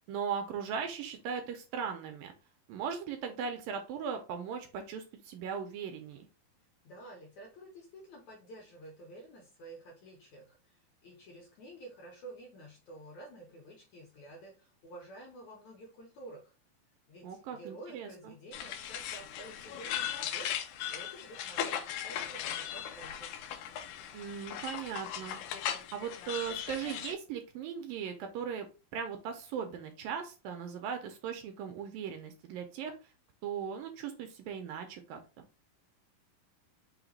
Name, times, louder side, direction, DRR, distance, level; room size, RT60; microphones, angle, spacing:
voice 1, 0.0-2.3 2.7-6.3 17.2-18.3 24.1-28.7 28.9-32.9 33.4-35.2, right 7 dB, 75° right, 5 dB, 2.2 m, -38 dB
voice 2, 6.8-16.5 17.1-23.3, right 2 dB, 70° left, -1 dB, 1.8 m, -50 dB
sound 1, 18.5-27.1, left 10 dB, 85° left, 1.8 m, -38 dB
5.8 x 2.2 x 3.9 m, 0.32 s
omnidirectional pair, 4.3 m